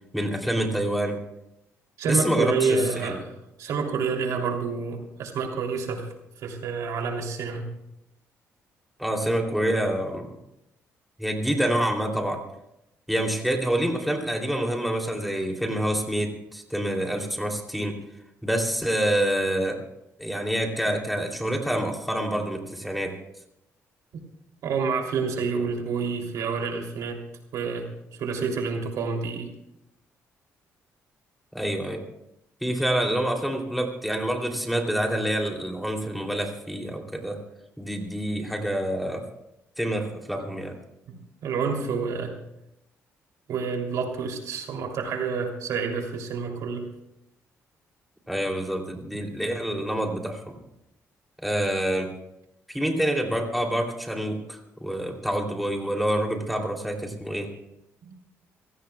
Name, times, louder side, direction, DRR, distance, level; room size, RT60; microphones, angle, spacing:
voice 1, 0.1-1.2 2.1-3.2 9.0-10.3 11.2-12.4 13.1-18.0 18.4-19.8 20.2-23.2 31.5-32.0 32.6-37.4 37.8-39.2 39.8-40.7 48.3-50.6 51.4-52.1 52.7-57.5, right 1 dB, ahead, 1 dB, 3.1 m, -27 dB
voice 2, 2.0-3.3 3.6-6.1 6.4-7.7 24.1-24.3 24.6-27.2 27.5-29.5 41.1-42.3 43.5-46.9 58.0-58.1, right 5 dB, 80° right, 2 dB, 3.1 m, -28 dB
26.0 x 17.0 x 2.4 m, 0.85 s
cardioid pair, 95°, 6 cm